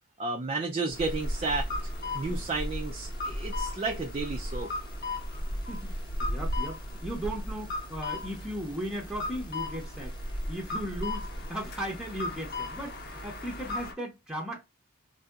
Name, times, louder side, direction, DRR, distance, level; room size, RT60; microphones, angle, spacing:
voice 1, 0.2-1.7 2.1-4.7, right 3 dB, 30° right, 0.3 m, -32 dB
sound 1, 0.9-13.9, left 1 dB, 50° left, 0.7 m, -35 dB
sound 2, 0.9-13.9, right 2 dB, 20° left, 0.8 m, -46 dB
voice 2, 5.7-10.1 10.5-14.6, equal, 5° right, 0.7 m, -37 dB
3.6 x 2.7 x 2.3 m
head